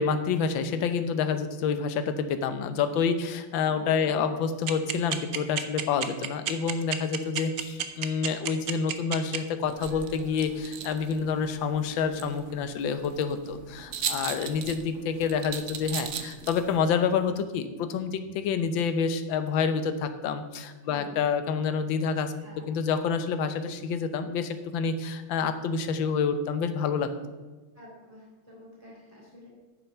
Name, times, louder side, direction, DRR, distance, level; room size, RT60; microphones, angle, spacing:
voice 1, 0.0-22.3 22.7-27.1, left 6 dB, 70° left, 9 dB, 1.5 m, -28 dB
voice 2, 3.6-4.4 20.8-21.2 22.4-22.7 27.7-29.6, left 1 dB, 5° left, -5 dB, 3.2 m, -49 dB
sound 1, 4.7-9.4, right 10 dB, 65° right, 0.9 m, -29 dB
sound 2, 9.7-16.8, right 7 dB, 85° right, 0.6 m, -39 dB
9.6 x 7.4 x 5.6 m, 1.3 s
omnidirectional pair, 2.3 m